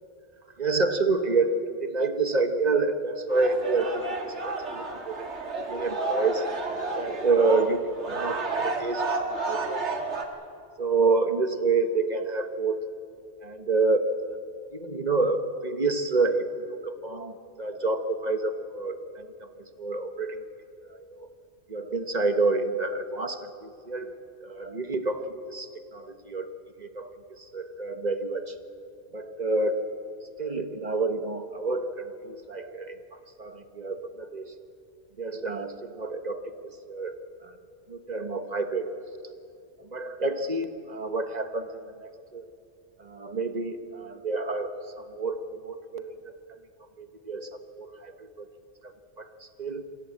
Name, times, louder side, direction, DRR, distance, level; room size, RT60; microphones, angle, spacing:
voice 1, 0.6-5.3 5.6-6.5 7.0-9.8 10.8-12.8 13.4-14.2 14.7-19.5 19.8-20.4 20.8-21.3 21.7-26.5 26.8-28.5 29.1-29.9 30.4-34.5 35.2-37.6 37.9-38.9 39.8-42.5 43.0-46.4 47.0-48.5 48.8-49.8, right 3 dB, 35° right, 8 dB, 1.2 m, -29 dB
sound 1, 3.3-10.2, right 3 dB, 65° right, 2.1 m, -31 dB
26.5 x 16.0 x 8.7 m, 2.6 s
omnidirectional pair, 1.2 m